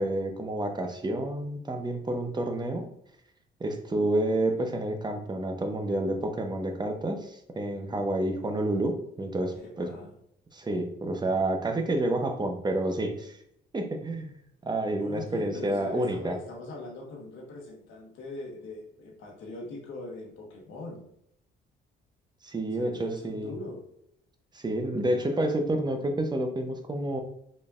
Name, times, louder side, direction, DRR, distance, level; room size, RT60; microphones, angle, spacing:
voice 1, 0.0-2.9 3.6-9.9 10.5-13.4 13.7-14.3 14.6-16.4 22.4-23.5 24.5-27.2, right 1 dB, 20° right, 5 dB, 0.6 m, -29 dB
voice 2, 9.5-10.1 15.0-21.0 22.7-23.8, left 2 dB, 80° left, 0 dB, 1.1 m, -41 dB
4.2 x 3.2 x 2.4 m, 0.72 s
cardioid pair, 90°, 20 cm